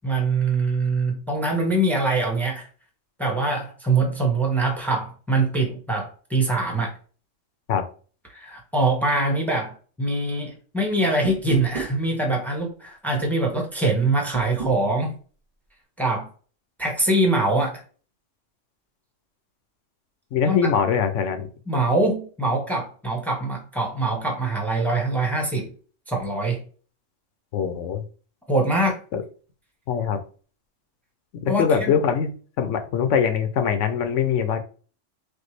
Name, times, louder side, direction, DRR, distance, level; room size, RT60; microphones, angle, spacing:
voice 1, 0.0-2.7 3.2-6.9 8.3-15.1 16.0-16.3 16.8-17.8 20.4-20.7 21.7-25.7 26.1-26.6 28.5-29.0 31.5-31.9, right 2 dB, ahead, 0 dB, 1.0 m, -23 dB
sound 1, 11.2-12.0 14.3-14.8, right 6 dB, 40° right, 0.7 m, -33 dB
voice 2, 20.3-21.5 27.5-28.0 29.1-29.2 29.9-30.2 31.4-32.3 32.6-34.6, left 7 dB, 75° left, 8 dB, 1.0 m, -22 dB
6.4 x 2.3 x 3.2 m, 0.39 s
omnidirectional pair, 1.3 m